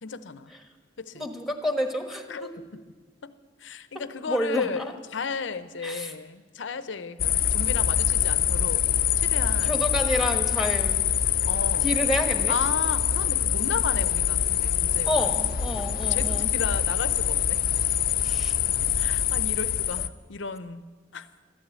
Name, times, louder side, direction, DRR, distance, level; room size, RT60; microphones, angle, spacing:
voice 1, 0.0-0.5 1.0-1.3 2.3-2.7 3.2-3.3 3.6-8.9 9.2-9.8 11.5-11.9 12.5-15.3 16.0-17.6 19.0-20.8 21.1-21.3, left 5 dB, 90° left, 13 dB, 0.7 m, -34 dB
voice 2, 1.1-2.5 4.3-4.9 5.8-6.1 9.7-11.0 11.8-12.6 15.1-16.5 18.2-18.6, equal, ahead, 5 dB, 1.3 m, -29 dB
sound 1, 7.2-20.1, left 9 dB, 50° left, 0.5 m, -25 dB
13.0 x 12.0 x 8.1 m, 1.4 s
head